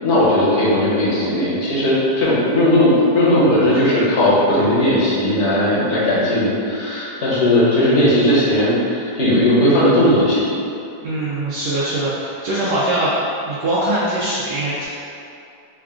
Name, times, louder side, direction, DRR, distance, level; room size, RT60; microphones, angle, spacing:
voice 1, 0.0-10.5, left 1 dB, 50° left, -7 dB, 1.0 m, -17 dB
voice 2, 11.0-13.1 13.5-14.8, right 1 dB, 85° right, -8 dB, 1.2 m, -22 dB
3.8 x 2.4 x 3.6 m, 2.6 s
omnidirectional pair, 1.8 m